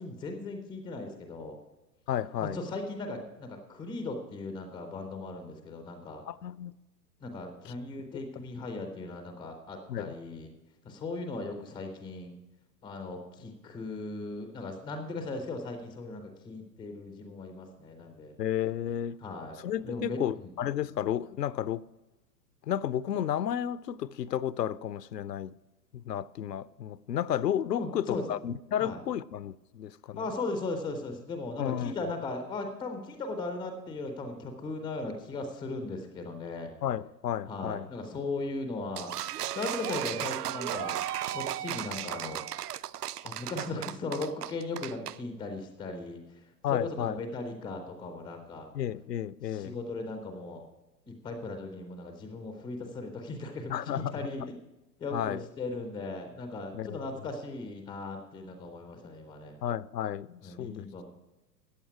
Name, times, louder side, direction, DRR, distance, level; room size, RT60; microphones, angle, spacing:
voice 1, 0.0-1.6 2.4-6.2 7.2-10.5 10.8-12.3 12.8-18.4 19.2-20.5 27.7-28.2 28.8-29.0 30.2-36.7 37.5-39.1 39.5-42.8 43.2-48.7 49.4-50.7 51.1-54.4 55.0-59.6 60.4-61.1, left 3 dB, 5° left, 0.3 m, -38 dB
voice 2, 2.1-2.6 6.3-6.7 9.9-10.1 18.4-19.2 19.6-21.8 22.6-25.5 25.9-30.2 31.6-31.9 36.8-37.9 46.6-47.2 48.7-49.7 53.7-54.1 55.1-55.4 56.7-57.0 59.6-60.9, left 10 dB, 75° left, 0.6 m, -32 dB
sound 1, 39.0-45.2, right 12 dB, 65° right, 0.6 m, -35 dB
14.0 x 8.9 x 4.7 m
figure-of-eight pair, 100°, 50 cm